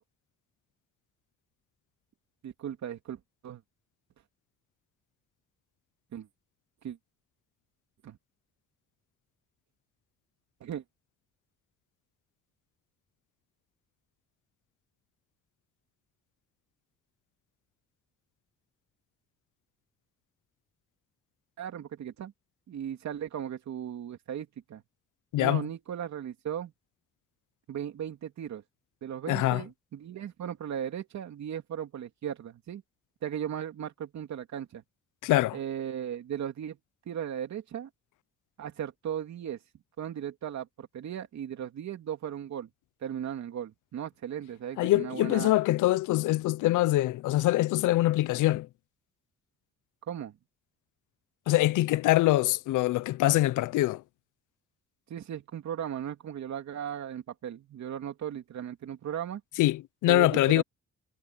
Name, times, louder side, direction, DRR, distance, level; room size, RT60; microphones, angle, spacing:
voice 1, 2.4-3.6 6.1-6.3 6.8-7.0 8.0-8.2 10.6-10.8 21.6-22.3 22.7-24.8 25.4-26.7 27.7-28.6 29.0-32.8 33.2-34.8 35.5-36.8 37.1-37.9 38.6-39.6 40.0-42.7 43.0-45.5 50.1-50.4 55.1-59.4 60.1-60.6, right 9 dB, 65° right, 3.0 m, -37 dB
voice 2, 25.3-25.7 29.3-29.6 35.2-35.6 44.8-48.7 51.5-54.0 59.6-60.6, left 16 dB, 85° left, 0.7 m, -24 dB
cardioid pair, 90°, 30 cm